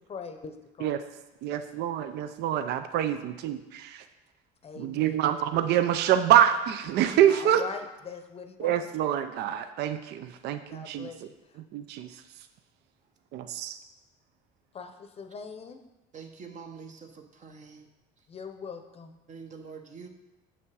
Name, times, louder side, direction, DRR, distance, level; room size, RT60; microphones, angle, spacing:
voice 1, 0.1-1.1 4.6-5.2 7.3-8.9 10.7-11.2 11.5-11.6 14.7-15.8 18.3-19.2, left 5 dB, 35° left, 7 dB, 0.7 m, -41 dB
voice 2, 1.4-4.0 4.8-7.6 8.6-11.1 11.7-12.1 13.3-13.8, right 10 dB, 65° right, 10 dB, 0.5 m, -26 dB
voice 3, 16.1-17.9 19.3-20.1, right 5 dB, 40° right, 5 dB, 0.9 m, -45 dB
7.2 x 5.8 x 4.7 m, 1.0 s
cardioid pair, 105°, 18 cm